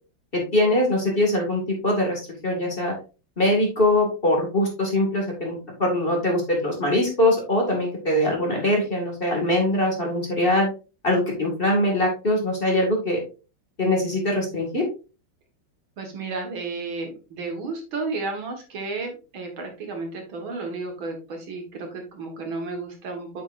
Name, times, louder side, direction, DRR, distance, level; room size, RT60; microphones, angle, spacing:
voice 1, 0.3-2.9 3.4-10.7 11.0-13.2 13.8-14.8, left 1 dB, 25° left, 0 dB, 2.0 m, -22 dB
voice 2, 16.0-23.4, right 3 dB, 70° right, 3 dB, 2.4 m, -32 dB
8.2 x 6.2 x 2.5 m, 0.32 s
omnidirectional pair, 2.3 m